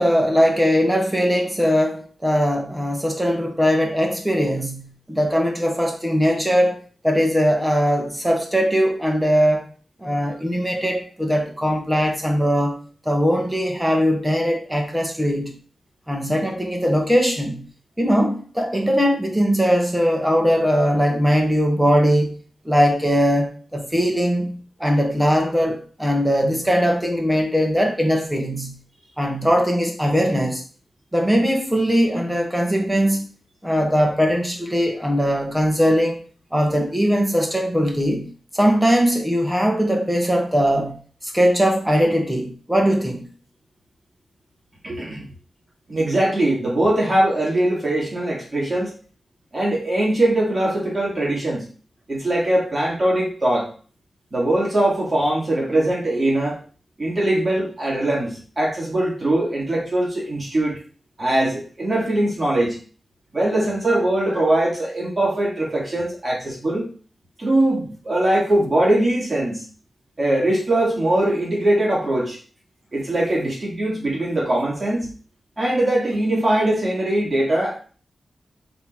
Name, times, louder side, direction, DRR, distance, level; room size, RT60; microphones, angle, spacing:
voice 1, 0.0-6.7 7.0-9.7 10.0-12.8 13.0-15.5 16.1-17.6 18.0-22.3 22.6-28.7 29.2-30.6 31.1-33.3 33.6-36.2 36.5-43.2, equal, 5° right, 1.5 m, -20 dB
voice 2, 44.8-45.3 45.9-48.9 49.5-51.7 52.1-53.7 54.3-56.6 57.0-60.8 61.2-62.8 63.3-66.9 67.4-69.6 70.2-72.4 72.9-75.1 75.6-77.8, right 1 dB, 30° right, 2.8 m, -21 dB
5.7 x 4.0 x 4.7 m
wide cardioid pair, 90°, 0 cm